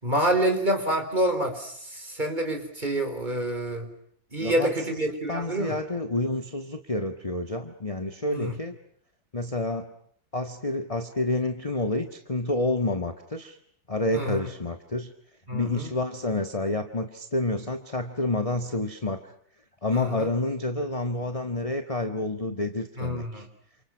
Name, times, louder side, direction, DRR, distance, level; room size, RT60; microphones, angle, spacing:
voice 1, 0.0-3.9 4.3-5.8 8.3-8.5 14.1-14.4 15.5-15.9 19.9-20.3 23.0-23.4, right 1 dB, 25° right, 5 dB, 4.5 m, -27 dB
voice 2, 4.4-5.0 5.3-8.8 9.3-9.9 10.3-13.6 13.9-15.1 15.5-19.3 19.8-23.5, left 2 dB, 20° left, 6 dB, 1.6 m, -29 dB
29.5 x 28.5 x 6.3 m, 0.63 s
omnidirectional pair, 2.0 m